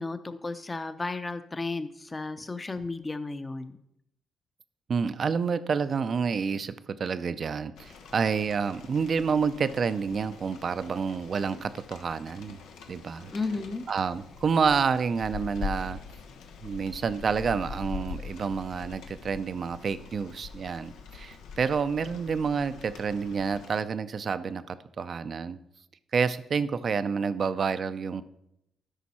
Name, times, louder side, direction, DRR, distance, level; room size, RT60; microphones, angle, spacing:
voice 1, 0.0-3.8 13.3-13.8, left 3 dB, 25° left, 11 dB, 0.7 m, -33 dB
voice 2, 4.9-12.6 12.9-13.3 13.9-16.0 16.6-25.6 26.1-28.2, right 5 dB, 50° right, 13 dB, 0.5 m, -29 dB
Rain, 7.8-23.8, left 5 dB, 85° left, 0.9 m, -43 dB
13.0 x 5.2 x 4.3 m, 0.82 s
cardioid pair, 75°, 0 cm